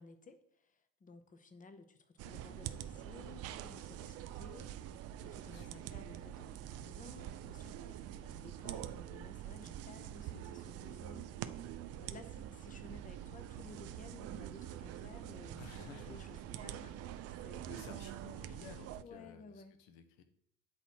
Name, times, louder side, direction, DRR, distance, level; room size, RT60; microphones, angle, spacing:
voice 1, 0.0-4.7 5.2-11.3 12.0-18.1 18.4-18.6 19.0-19.8, left 3 dB, 20° left, 9 dB, 0.7 m, -56 dB
sound 1, 2.2-19.0, right 11 dB, 40° right, 0.4 m, -45 dB
voice 2, 5.4-5.8 15.6-16.3 17.7-20.2, left 6 dB, 60° left, 8 dB, 0.9 m, -54 dB
8.3 x 4.0 x 4.3 m, 0.75 s
figure-of-eight pair, 55°, 41 cm